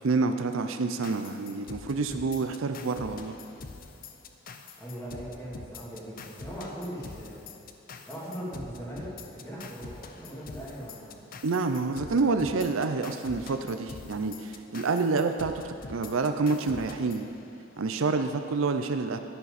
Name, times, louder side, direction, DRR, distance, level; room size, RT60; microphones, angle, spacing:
voice 1, 0.0-3.3 11.4-15.6 15.9-17.3 17.8-19.2, right 4 dB, 70° right, 7 dB, 0.5 m, -28 dB
sound 1, 1.0-17.9, left 4 dB, 40° left, 0.6 m, -45 dB
voice 2, 4.8-7.4 8.0-9.1 9.3-11.2, equal, 15° left, -8 dB, 2.8 m, -40 dB
12.0 x 11.0 x 4.2 m, 2.9 s
head